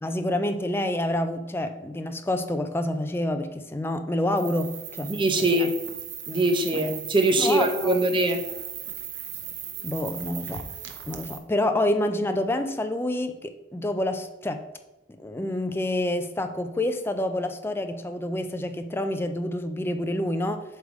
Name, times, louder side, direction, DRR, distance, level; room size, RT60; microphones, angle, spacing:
voice 1, 0.0-5.7 6.7-6.8 7.4-8.0 9.8-10.6 11.0-14.6 15.2-20.6, left 1 dB, 10° left, 7 dB, 0.4 m, -28 dB
sound 1, 4.4-11.4, right 9 dB, 60° right, 0.7 m, -37 dB
voice 2, 5.0-5.8 6.3-8.5, right 1 dB, 25° right, 6 dB, 0.6 m, -23 dB
7.5 x 3.5 x 4.8 m, 1.0 s
head